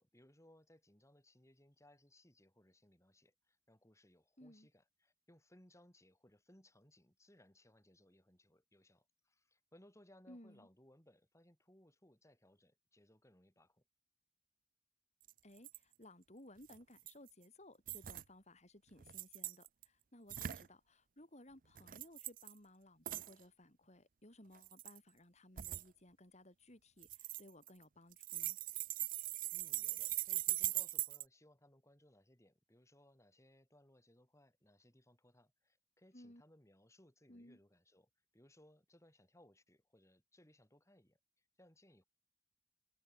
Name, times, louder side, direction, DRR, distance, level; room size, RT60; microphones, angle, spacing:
voice 1, 0.0-13.8 29.5-42.0, left 1 dB, 15° left, 7.8 m, -67 dB
voice 2, 4.4-4.7 10.3-10.7 15.4-28.6 36.1-36.4 37.3-37.6, left 1 dB, 40° left, 5.8 m, -60 dB
sound 1, 15.3-15.4 15.6-15.8 16.7-17.3 17.9-18.2 19.0-19.8 20.3-20.7 21.8-22.5 23.1-23.3 24.5-25.0 25.6-25.8 27.0-27.8 28.1-31.2, right 15 dB, 50° right, 0.5 m, -41 dB
head